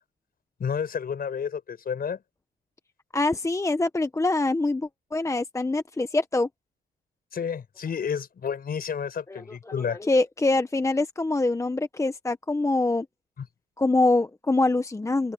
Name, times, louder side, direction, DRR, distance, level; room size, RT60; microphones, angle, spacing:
voice 1, 0.6-2.2 7.3-10.0 13.4-13.5, left 7 dB, 50° left, 5.3 m, -30 dB
voice 2, 3.1-6.5 9.3-9.4 9.7-13.1 13.8-15.3, left 2 dB, 15° left, 1.0 m, -24 dB
open air
cardioid pair, 90°, 20 cm